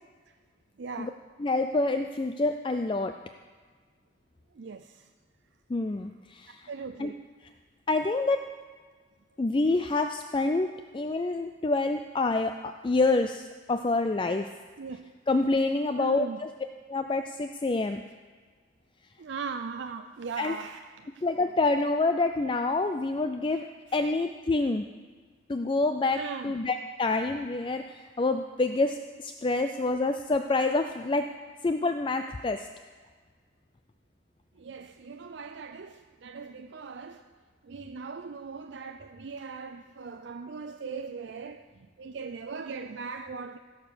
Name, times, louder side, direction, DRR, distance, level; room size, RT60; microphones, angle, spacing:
voice 1, 0.8-1.1 4.6-5.0 6.7-7.2 14.8-15.1 16.0-16.4 19.2-20.8 26.2-26.5 34.6-37.2 37.6-41.6 42.0-43.6, right 5 dB, 70° right, 7 dB, 0.4 m, -39 dB
voice 2, 1.4-3.1 5.7-6.7 7.0-7.1 7.9-8.4 9.4-14.5 15.3-16.5 16.9-18.0 20.4-20.6 21.2-24.9 25.5-31.3 31.6-32.7, left 3 dB, 25° left, 7 dB, 0.3 m, -27 dB
16.0 x 6.7 x 6.9 m, 1.5 s
head